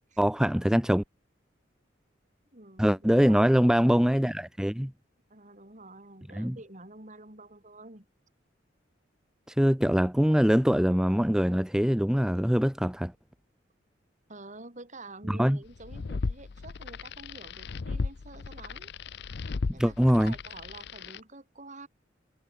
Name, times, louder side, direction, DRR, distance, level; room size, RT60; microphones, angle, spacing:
voice 1, 0.2-1.0 2.8-4.9 6.3-6.6 9.5-13.1 15.3-15.6 19.8-20.3, equal, 5° right, 0.6 m, -23 dB
voice 2, 2.5-3.5 5.3-8.1 14.3-18.9 19.7-21.9, right 2 dB, 40° right, 5.7 m, -48 dB
sound 1, 15.7-21.2, left 4 dB, 60° left, 0.6 m, -36 dB
head